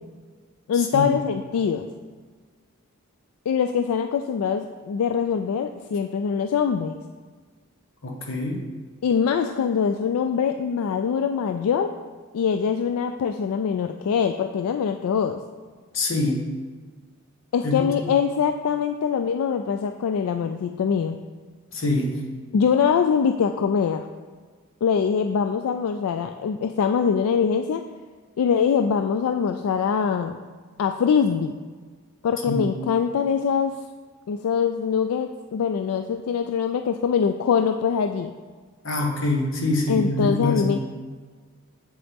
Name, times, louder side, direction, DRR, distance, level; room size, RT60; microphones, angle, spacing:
voice 1, 0.7-1.9 3.5-7.0 9.0-11.9 12.3-15.4 17.5-21.2 22.5-24.1 24.8-27.8 28.4-30.4 30.8-31.5 32.2-33.8 34.3-38.3 39.9-40.8, left 6 dB, 80° left, 7 dB, 0.3 m, -23 dB
voice 2, 8.0-8.6 15.9-16.4 17.6-18.2 21.7-22.3 32.5-32.7 38.8-40.8, left 2 dB, 60° left, 0 dB, 1.2 m, -25 dB
7.6 x 7.0 x 3.5 m, 1.5 s
head